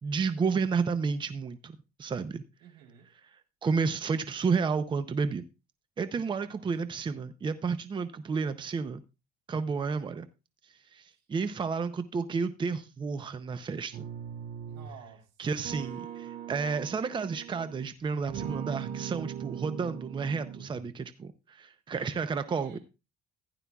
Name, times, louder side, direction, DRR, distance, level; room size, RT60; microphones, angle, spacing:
voice 1, 0.0-2.4 3.2-5.4 6.0-9.0 9.5-10.3 10.6-14.0 15.4-22.8, right 5 dB, 30° right, 0.6 m, -31 dB
voice 2, 2.6-3.1 6.5-6.7 14.6-15.3 16.2-16.7 22.5-22.8, right 8 dB, 85° right, 3.5 m, -53 dB
sound 1, 13.9-15.0 15.6-17.8 18.3-20.9, right 9 dB, 65° right, 1.9 m, -40 dB
15.0 x 11.0 x 2.3 m
cardioid pair, 110°, 17 cm